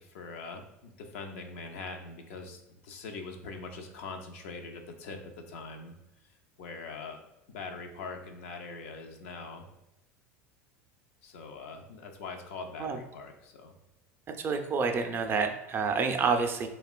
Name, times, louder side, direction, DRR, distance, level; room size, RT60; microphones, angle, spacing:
voice 1, 0.0-5.2 5.5-6.0 6.6-7.2 7.5-9.6 11.2-13.7, left 4 dB, 75° left, 3 dB, 0.4 m, -42 dB
voice 2, 14.4-16.7, right 5 dB, 30° right, 5 dB, 0.3 m, -28 dB
2.8 x 2.2 x 2.4 m, 0.93 s
hypercardioid pair, 95°, 7 cm